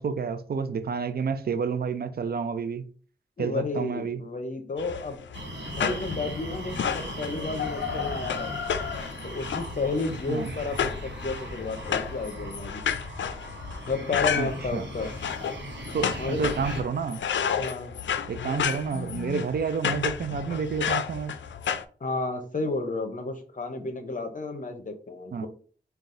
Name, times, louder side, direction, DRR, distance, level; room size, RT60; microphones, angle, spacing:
voice 1, 0.0-2.8 3.4-4.2 10.3-10.5 14.3-14.9 15.9-17.2 18.3-21.4 25.3-25.5, right 6 dB, 55° right, 0.5 m, -29 dB
voice 2, 3.4-5.2 5.7-8.5 9.2-12.8 13.9-15.1 16.2-16.6 17.5-17.9 22.0-25.5, left 3 dB, 45° left, 0.7 m, -32 dB
sound 1, 4.8-21.8, left 8 dB, 80° left, 0.4 m, -32 dB
sound 2, 5.3-16.8, right 1 dB, 70° right, 1.0 m, -39 dB
3.9 x 2.3 x 3.7 m
wide cardioid pair, 70°, 19 cm